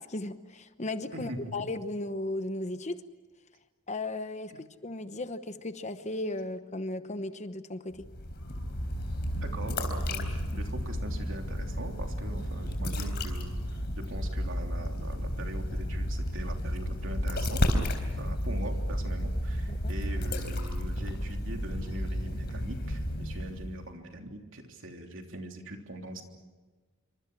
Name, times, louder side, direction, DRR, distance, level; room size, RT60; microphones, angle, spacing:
voice 1, 0.0-3.0 3.9-8.1 19.7-19.8, left 2 dB, 30° left, 10 dB, 1.0 m, -36 dB
voice 2, 1.1-1.5 4.5-4.6 9.4-17.8 18.2-26.2, right 1 dB, 60° right, 3 dB, 3.3 m, -42 dB
sound 1, 7.9-23.8, equal, 50° left, 3.8 m, -32 dB
27.0 x 25.5 x 6.2 m, 1.3 s
head